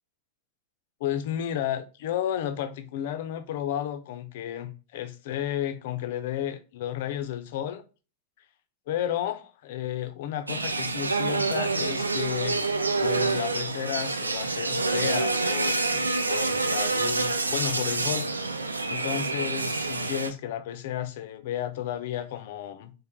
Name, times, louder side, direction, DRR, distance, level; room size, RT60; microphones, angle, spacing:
voice 1, 1.0-7.8 8.9-12.7 13.0-18.3 18.9-22.9, left 11 dB, 55° left, 0.6 m, -32 dB
sound 1, 10.5-20.3, right 3 dB, 80° right, 0.4 m, -27 dB
4.4 x 3.3 x 3.5 m
figure-of-eight pair, 90°, 0 cm